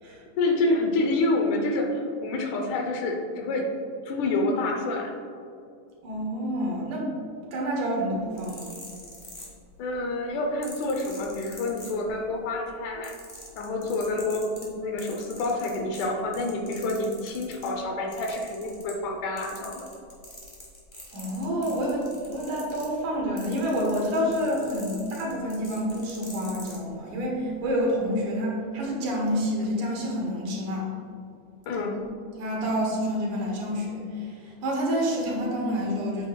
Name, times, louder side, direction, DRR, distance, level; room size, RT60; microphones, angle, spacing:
voice 1, 0.4-3.7 4.1-5.1 9.8-13.2 13.6-19.9 31.7-32.0, left 2 dB, 75° left, 2 dB, 2.1 m, -28 dB
voice 2, 6.0-7.1 7.5-8.7 21.1-30.9 31.7-31.8 32.4-36.3, equal, 70° right, -3 dB, 2.9 m, -28 dB
sound 1, 8.2-9.9 10.6-12.4 12.7-17.7 18.1-19.1 19.4-26.8 27.5-27.7, left 1 dB, 30° left, 1.1 m, -44 dB
8.6 x 8.1 x 2.3 m, 2.5 s
omnidirectional pair, 3.8 m